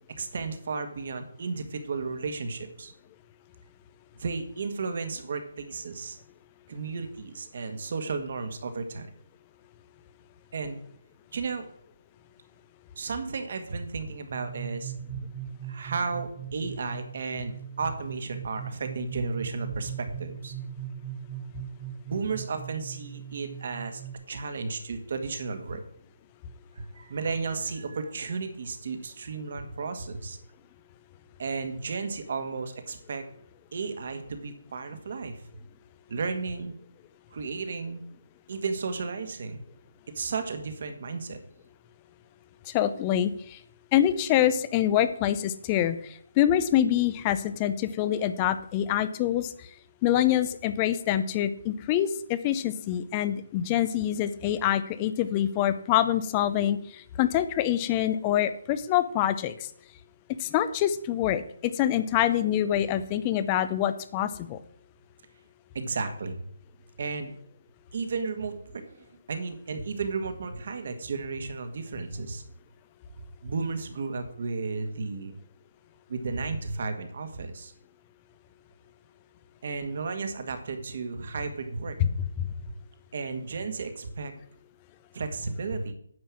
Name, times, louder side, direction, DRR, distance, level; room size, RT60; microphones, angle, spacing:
voice 1, 0.2-2.9 4.2-6.2 6.7-9.1 10.5-10.8 11.3-11.7 13.0-15.2 15.7-20.5 22.1-24.0 24.3-25.8 26.8-30.4 31.4-33.2 33.7-35.4 36.1-36.7 37.3-38.0 38.5-39.6 40.1-41.4 65.7-66.4 67.0-67.3 67.9-68.8 69.3-72.4 73.4-75.4 76.1-77.7 79.6-82.2 83.1-84.3 85.1-85.9, right 4 dB, 50° right, 8 dB, 1.7 m, -33 dB
sound 1, 14.3-24.1, right 9 dB, 25° right, 1.4 m, -40 dB
voice 2, 42.7-43.6 43.9-46.0 46.4-49.5 50.0-56.8 57.2-59.5 60.4-64.6 82.0-82.1, left 11 dB, 20° left, 13 dB, 0.6 m, -25 dB
9.7 x 5.5 x 7.5 m, 0.66 s
hypercardioid pair, 165°, 0 cm